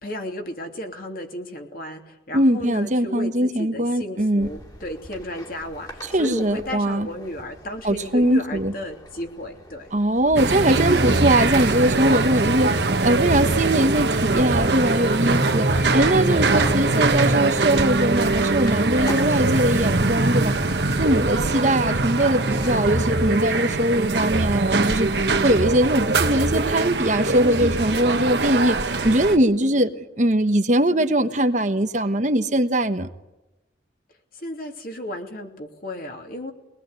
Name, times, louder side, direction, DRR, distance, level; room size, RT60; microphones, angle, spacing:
voice 1, 0.0-9.9 29.6-30.0 34.3-36.5, left 1 dB, 50° left, 3 dB, 3.1 m, -34 dB
voice 2, 2.3-4.5 6.0-7.1 7.8-8.7 9.9-20.6 21.0-29.9 30.2-33.1, right 1 dB, 40° right, 8 dB, 1.2 m, -21 dB
sound 1, 4.4-22.9, left 1 dB, 20° left, 3.0 m, -41 dB
sound 2, 10.4-29.4, right 3 dB, 65° right, 1.6 m, -22 dB
23.5 x 19.5 x 8.1 m, 0.99 s
head